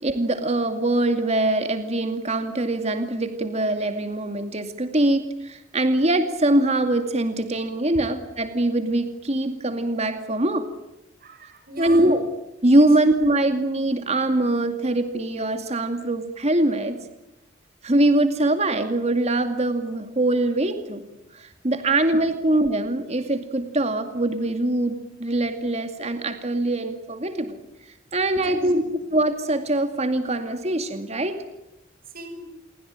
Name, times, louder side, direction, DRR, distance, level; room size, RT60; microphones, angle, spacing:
voice 1, 0.0-10.7 11.8-12.2 12.6-17.0 17.8-21.0 21.3-27.6 28.1-28.8 29.1-31.4, right 1 dB, 35° right, 8 dB, 2.3 m, -23 dB
voice 2, 11.2-12.1 18.3-18.4 22.3-22.4 28.3-28.7 32.1-32.4, right 1 dB, 50° right, 7 dB, 7.0 m, -39 dB
28.5 x 23.0 x 9.0 m, 0.89 s
head